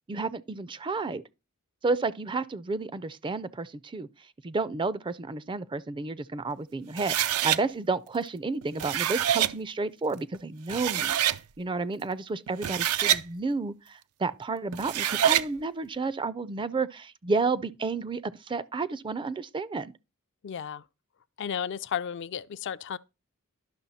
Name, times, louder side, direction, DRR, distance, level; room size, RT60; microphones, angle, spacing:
voice 1, 0.1-1.2 1.8-4.1 4.4-11.1 11.6-19.9, right 3 dB, 20° right, 0.4 m, -31 dB
sound 1, 7.0-7.6 8.6-9.5 10.3-10.4 10.7-11.4 12.5-13.2 14.7-15.5, right 11 dB, 85° right, 0.5 m, -26 dB
voice 2, 20.4-20.8 21.4-23.0, left 8 dB, 55° left, 0.4 m, -33 dB
11.0 x 6.2 x 4.1 m
head